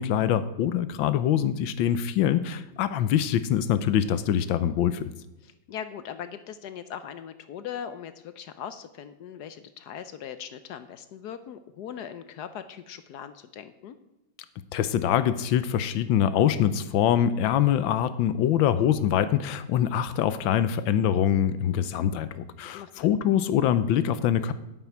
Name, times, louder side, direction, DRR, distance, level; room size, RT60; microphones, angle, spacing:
voice 1, 0.0-5.1 14.7-24.5, left 10 dB, 85° left, 13 dB, 1.5 m, -24 dB
voice 2, 5.4-14.0 22.7-23.1, left 8 dB, 70° left, 11 dB, 1.1 m, -40 dB
10.0 x 9.2 x 4.6 m, 0.94 s
omnidirectional pair, 2.1 m